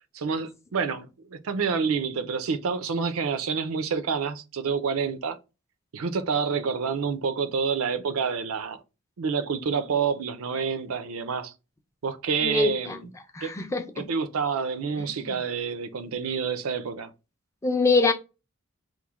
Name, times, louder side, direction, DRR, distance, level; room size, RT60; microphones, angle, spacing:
voice 1, 0.1-5.4 5.9-8.8 9.2-11.5 12.0-13.1 13.4-13.5 14.0-17.1, right 5 dB, 85° right, 0.5 m, -28 dB
voice 2, 12.4-13.0 13.3-14.0 15.3-15.4 17.6-18.1, left 4 dB, 15° left, 0.3 m, -24 dB
3.1 x 2.1 x 3.4 m
head